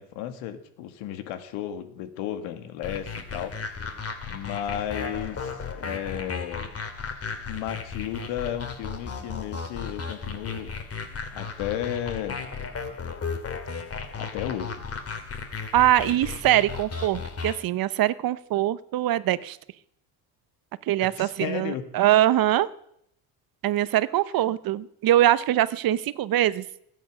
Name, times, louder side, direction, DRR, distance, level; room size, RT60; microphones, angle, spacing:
voice 1, 0.0-3.5 4.3-6.7 7.5-10.7 11.3-12.4 14.2-14.8 21.0-21.9, left 10 dB, 80° left, 9 dB, 1.9 m, -33 dB
sound 1, 2.8-17.6, left 5 dB, 30° left, 2.4 m, -35 dB
voice 2, 15.7-19.6 20.9-22.7 23.6-26.6, right 13 dB, 50° right, 17 dB, 0.8 m, -23 dB
22.0 x 8.9 x 6.1 m, 0.73 s
supercardioid pair, 100°, 45 cm